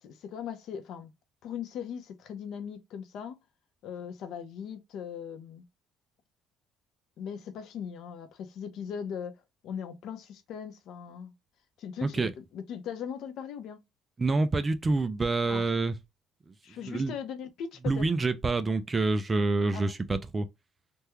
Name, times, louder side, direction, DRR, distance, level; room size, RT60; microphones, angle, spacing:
voice 1, 0.0-1.1 1.4-3.4 3.8-5.6 7.2-11.3 11.8-13.8 15.5-15.6 16.6-18.0 19.7-19.9, left 7 dB, 60° left, 0.6 m, -39 dB
voice 2, 14.2-15.9 16.9-17.1 17.9-20.5, right 3 dB, 20° right, 0.3 m, -27 dB
3.5 x 2.2 x 2.9 m
cardioid pair, 170°, 0 cm